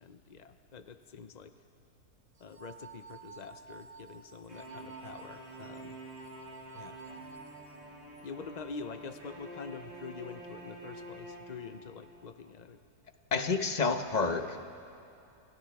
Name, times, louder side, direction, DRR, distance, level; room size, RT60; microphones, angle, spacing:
voice 1, 0.0-1.5 2.4-6.0 6.7-7.0 8.2-12.8, left 5 dB, 70° left, 9 dB, 0.4 m, -46 dB
sound 1, 2.4-8.2, right 6 dB, 80° right, 2.0 m, -52 dB
sound 2, 4.5-12.2, right 1 dB, 25° right, 7.7 m, -48 dB
voice 2, 13.3-14.6, left 4 dB, 30° left, 7 dB, 0.9 m, -29 dB
29.0 x 28.0 x 3.5 m, 2.8 s
omnidirectional pair, 1.7 m